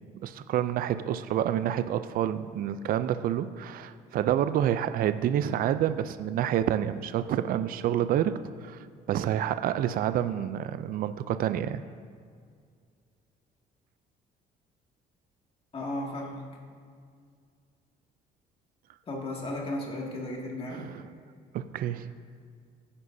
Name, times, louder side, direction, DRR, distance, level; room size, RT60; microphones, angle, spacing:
voice 1, 0.2-11.8 20.7-21.1 21.5-22.1, right 10 dB, 60° right, 12 dB, 0.4 m, -28 dB
voice 2, 15.7-16.4 19.1-20.9, left 1 dB, 35° left, -2 dB, 2.2 m, -34 dB
15.5 x 9.8 x 2.7 m, 2.1 s
cardioid pair, 110°, 17 cm